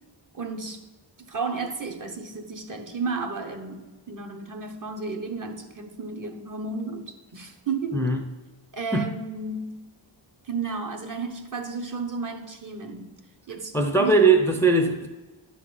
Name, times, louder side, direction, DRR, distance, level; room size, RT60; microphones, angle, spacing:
voice 1, 0.3-0.8 1.3-8.1 8.7-9.9 10.4-13.1 13.5-14.2, right 4 dB, 40° right, 1.0 m, -33 dB
voice 2, 7.9-8.2 8.9-9.1 13.7-15.1, right 3 dB, 5° left, 0.5 m, -20 dB
11.0 x 4.1 x 7.6 m
wide cardioid pair, 145°, 47 cm